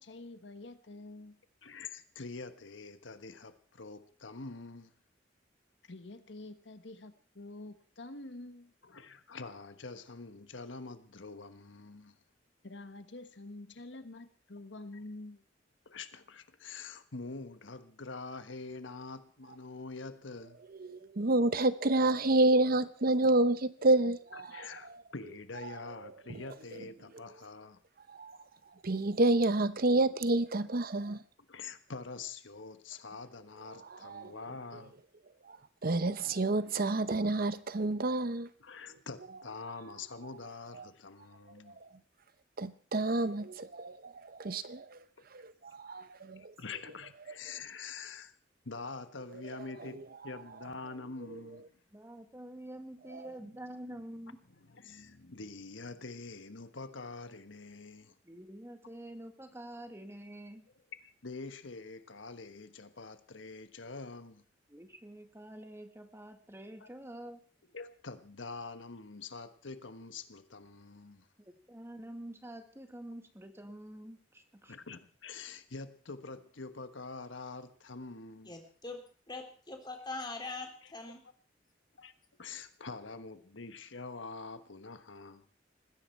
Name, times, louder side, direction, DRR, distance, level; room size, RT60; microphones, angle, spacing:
voice 1, 0.0-1.3 5.8-8.7 12.6-15.4, left 2 dB, 70° left, 1.4 m, -47 dB
voice 2, 1.6-4.9 8.8-12.2 15.8-20.6 24.3-27.8 31.5-34.9 38.6-41.8 45.2-45.3 46.6-48.4 48.6-51.6 54.7-58.1 61.0-64.4 66.8-66.9 67.7-71.3 74.6-78.5 80.8-80.9 82.0-82.1 82.4-85.5, left 4 dB, 85° left, 1.3 m, -45 dB
voice 3, 20.8-24.7 26.7-26.8 28.1-28.4 28.8-31.2 33.9-34.3 35.5-35.6 35.8-38.5 40.8-40.9 41.8-41.9 42.6-45.0 45.3-46.5 50.0-50.1 53.1-53.2, right 2 dB, 50° right, 0.8 m, -29 dB
voice 4, 51.9-54.4 58.2-60.7 64.7-67.4 71.4-74.8, right 1 dB, 15° right, 1.7 m, -47 dB
voice 5, 78.4-81.2 82.5-82.6, left 3 dB, 25° left, 3.3 m, -42 dB
20.0 x 16.0 x 4.5 m
head